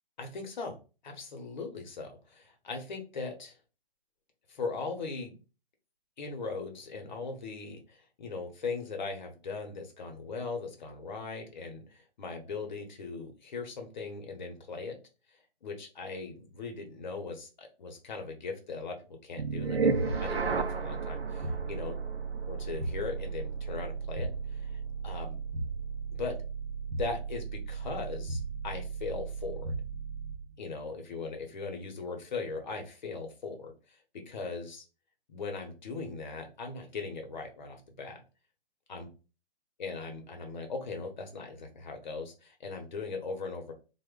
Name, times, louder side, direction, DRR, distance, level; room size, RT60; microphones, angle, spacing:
voice 1, 0.2-0.8 1.0-3.6 4.5-5.4 6.2-15.0 15.6-21.9 22.5-25.4 26.1-26.4 27.0-29.7 30.6-34.0 34.3-34.8 35.3-38.2 38.9-39.1 39.8-43.7, left 4 dB, 50° left, 3 dB, 0.7 m, -39 dB
sound 1, 19.4-30.5, right 4 dB, 90° right, 0.5 m, -34 dB
2.9 x 2.1 x 3.5 m, 0.33 s
figure-of-eight pair, 130°, 30 cm